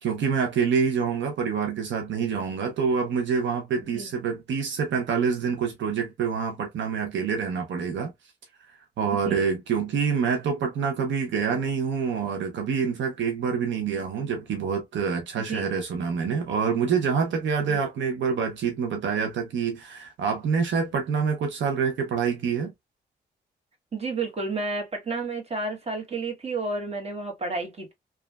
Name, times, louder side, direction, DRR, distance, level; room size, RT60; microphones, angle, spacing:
voice 1, 0.0-8.1 8.7-22.7, right 6 dB, 80° right, 0.7 m, -26 dB
voice 2, 9.1-9.4 15.4-15.7 17.6-17.8 23.9-27.9, right 3 dB, 35° right, 1.3 m, -31 dB
2.9 x 2.4 x 2.2 m
cardioid pair, 65°, 19 cm